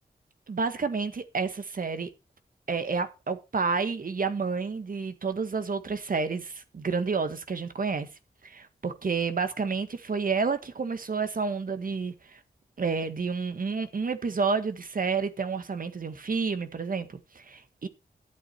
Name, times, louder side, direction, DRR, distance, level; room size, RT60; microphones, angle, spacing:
voice 1, 0.5-2.1 2.7-8.1 8.4-12.4 12.8-17.9, right 4 dB, 55° right, 1.6 m, -30 dB
12.5 x 8.5 x 4.4 m
cardioid pair, 55°, 17 cm